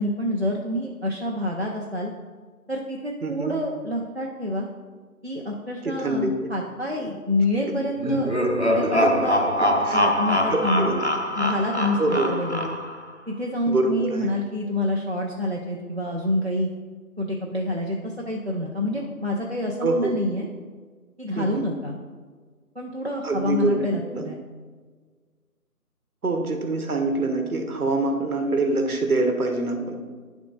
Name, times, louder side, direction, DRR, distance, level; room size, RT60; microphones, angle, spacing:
voice 1, 0.0-2.1 2.7-4.7 5.2-8.4 8.6-9.4 9.9-11.0 11.3-12.8 13.3-16.7 17.2-20.5 21.2-21.9 22.8-24.4, left 1 dB, 45° right, -2 dB, 0.5 m, -27 dB
voice 2, 3.2-3.5 5.8-6.3 8.8-9.1 9.8-10.0 10.5-11.0 12.0-12.3 13.7-14.3 19.8-20.1 21.4-21.7 23.2-24.3 26.2-30.0, right 2 dB, 65° right, 4 dB, 1.0 m, -25 dB
sound 1, 8.0-13.1, equal, 50° left, 0.4 m, -23 dB
10.0 x 3.6 x 3.8 m, 1.5 s
figure-of-eight pair, 175°, 46 cm